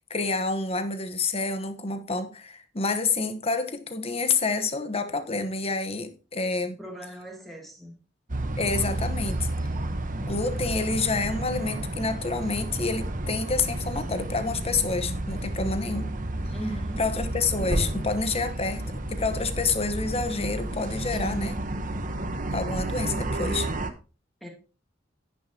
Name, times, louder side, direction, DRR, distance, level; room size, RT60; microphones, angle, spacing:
voice 1, 0.1-6.8 8.6-9.5 10.2-16.1 17.0-21.6 22.5-23.7, left 4 dB, 30° left, 1.0 m, -28 dB
voice 2, 6.8-7.9 16.5-17.0 24.4-24.5, right 1 dB, ahead, 2.6 m, -39 dB
sound 1, 8.3-23.9, right 1 dB, 45° right, 1.0 m, -31 dB
10.0 x 9.7 x 2.9 m
head